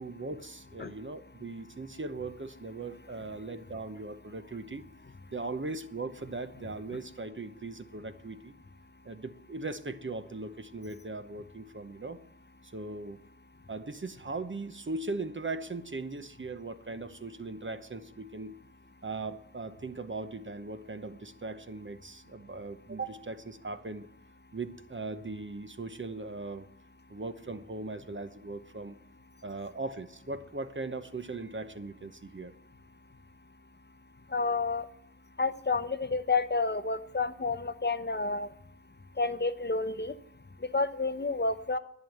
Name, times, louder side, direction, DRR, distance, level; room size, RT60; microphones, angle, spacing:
voice 1, 0.0-4.9 5.3-8.5 9.0-12.2 12.6-13.2 13.7-18.6 19.0-24.1 24.5-26.7 27.1-29.0 29.4-32.5, right 3 dB, 40° right, 10 dB, 0.9 m, -39 dB
voice 2, 34.3-34.9 35.4-38.5 39.2-40.2 40.6-41.8, left 3 dB, 35° left, 11 dB, 0.8 m, -30 dB
11.0 x 9.0 x 7.8 m, 0.76 s
cardioid pair, 40°, 31 cm